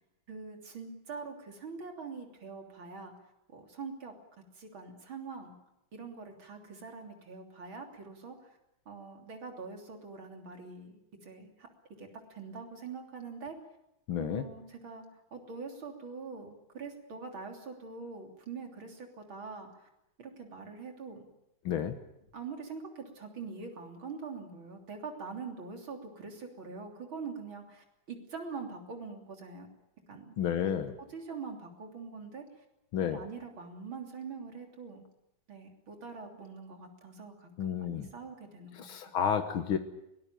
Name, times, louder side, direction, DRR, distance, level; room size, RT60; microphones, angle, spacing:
voice 1, 0.3-3.1 3.5-4.1 4.6-5.5 5.9-8.4 8.9-11.7 12.0-13.6 14.2-15.0 15.3-19.9 20.2-21.3 22.3-29.7 30.1-30.4 30.6-30.8 31.1-32.4 33.1-35.0 35.5-38.9, right 4 dB, 80° right, 3 dB, 4.0 m, -44 dB
voice 2, 14.1-14.5 21.6-22.0 30.4-30.9 32.9-33.2 37.6-38.1 38.7-39.8, left 8 dB, 90° left, 7 dB, 2.1 m, -31 dB
22.5 x 19.0 x 8.9 m, 0.83 s
omnidirectional pair, 2.2 m